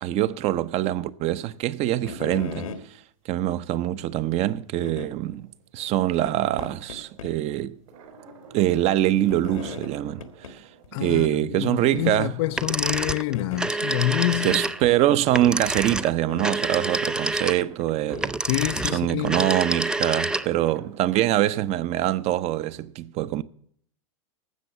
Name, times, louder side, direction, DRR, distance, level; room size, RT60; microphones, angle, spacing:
voice 1, 0.0-2.7 3.2-7.8 8.5-10.6 11.0-12.3 14.4-18.4 18.9-23.4, right 13 dB, 40° right, 0.7 m, -24 dB
sound 1, 2.0-2.8 3.7-3.8 4.8-5.1 6.2-6.3 6.6-7.3 7.6-7.7 9.3-9.9 10.2-10.5 10.8-10.9 11.3-11.4 11.9-12.3 13.3-13.6 14.3-15.0 16.3-16.9 18.1-18.3, left 4 dB, 90° left, 1.6 m, -37 dB
sound 2, 5.1-11.6 11.8-13.9 14.3-21.5, right 5 dB, 75° right, 3.8 m, -51 dB
voice 2, 10.9-14.6 18.4-19.4, left 16 dB, 55° left, 0.4 m, -27 dB
sound 3, 12.5-20.7, right 2 dB, 5° right, 0.4 m, -27 dB
13.0 x 7.8 x 6.7 m
hypercardioid pair, 110°, 17 cm